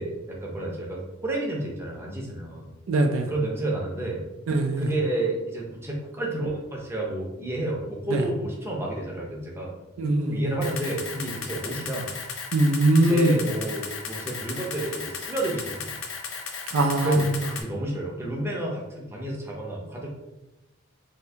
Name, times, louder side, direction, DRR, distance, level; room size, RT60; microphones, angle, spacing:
voice 1, 0.0-2.7 3.3-4.2 4.8-9.7 10.2-12.1 13.0-16.0 17.0-20.1, right 1 dB, 10° right, -2 dB, 0.6 m, -30 dB
voice 2, 2.9-3.3 4.5-4.9 8.1-8.2 10.0-10.5 12.5-13.4 16.7-17.2, right 2 dB, 75° right, 4 dB, 0.4 m, -21 dB
Camera, 10.6-17.6, left 5 dB, 65° left, 0.5 m, -35 dB
2.7 x 2.7 x 3.3 m, 1.0 s
head